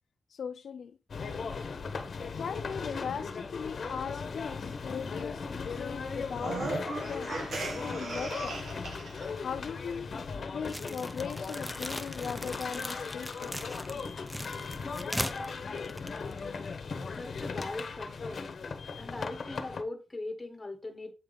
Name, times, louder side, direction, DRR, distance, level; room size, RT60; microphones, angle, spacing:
voice 1, 0.3-0.9 2.4-7.3 7.8-8.6 9.4-13.6 14.9-15.0, left 7 dB, 70° left, 0.5 m, -39 dB
sound 1, 1.1-19.8, left 5 dB, 50° left, 0.9 m, -38 dB
sound 2, 6.3-9.3, right 2 dB, 75° right, 1.4 m, -36 dB
sound 3, 10.6-16.7, equal, ahead, 0.5 m, -40 dB
voice 2, 17.1-18.6 19.0-21.1, left 2 dB, 15° left, 1.2 m, -40 dB
8.0 x 3.7 x 5.2 m
wide cardioid pair, 145°, 0 cm